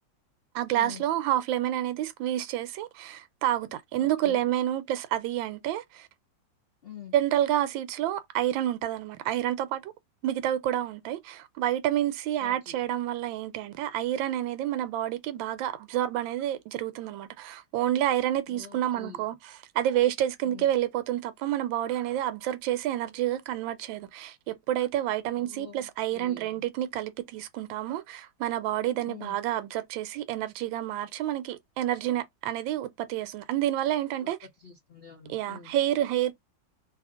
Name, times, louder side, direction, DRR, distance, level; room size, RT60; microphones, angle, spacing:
voice 1, 0.5-6.1 7.1-9.9 10.2-34.4 35.3-36.3, right 12 dB, 85° right, 1.3 m, -29 dB
voice 2, 3.9-4.4 6.8-7.1 12.4-12.8 18.5-19.2 20.4-20.7 25.4-26.5 29.0-29.4 34.2-34.3 34.6-35.8, left 8 dB, 80° left, 0.5 m, -46 dB
2.8 x 2.7 x 3.6 m
omnidirectional pair, 2.1 m